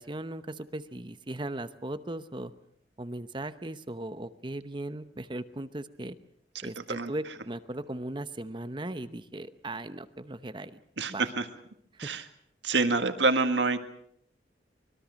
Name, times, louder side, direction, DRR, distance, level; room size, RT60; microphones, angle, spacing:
voice 1, 0.0-2.5 3.0-6.2 6.6-10.8 11.1-11.3, right 1 dB, 25° right, 12 dB, 0.9 m, -38 dB
voice 2, 11.0-11.5 12.0-12.2 12.6-13.8, right 3 dB, 85° right, 8 dB, 1.8 m, -26 dB
25.0 x 21.5 x 6.4 m, 0.66 s
head